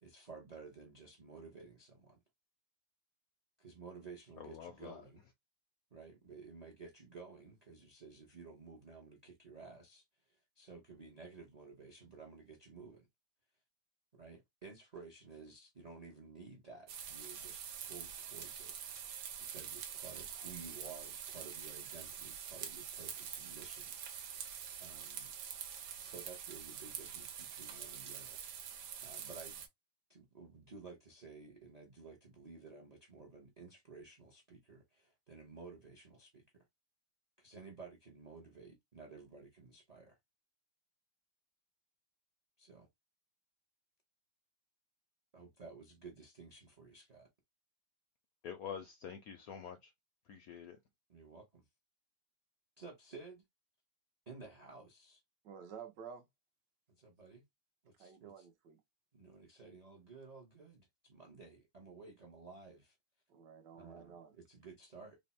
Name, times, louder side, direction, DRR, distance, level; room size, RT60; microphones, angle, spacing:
voice 1, 0.0-2.2 3.6-5.2 5.9-13.1 14.1-19.1 19.4-24.4 24.8-25.3 26.0-28.7 29.0-29.7 30.1-36.6 37.4-40.2 42.6-42.9 45.3-47.3 51.1-51.6 52.8-53.4 54.3-55.2 57.0-57.4 57.8-58.5 59.1-62.9 63.7-65.2, right 4 dB, 50° right, 0.4 m, -54 dB
voice 2, 4.4-5.0 48.4-49.9 50.3-50.8, left 7 dB, 75° left, 0.8 m, -47 dB
sound 1, 16.9-29.7, right 8 dB, 85° right, 1.6 m, -46 dB
voice 3, 55.4-56.3 58.0-58.8 63.3-64.3, right 7 dB, 70° right, 1.3 m, -51 dB
3.4 x 2.0 x 4.1 m
omnidirectional pair, 2.1 m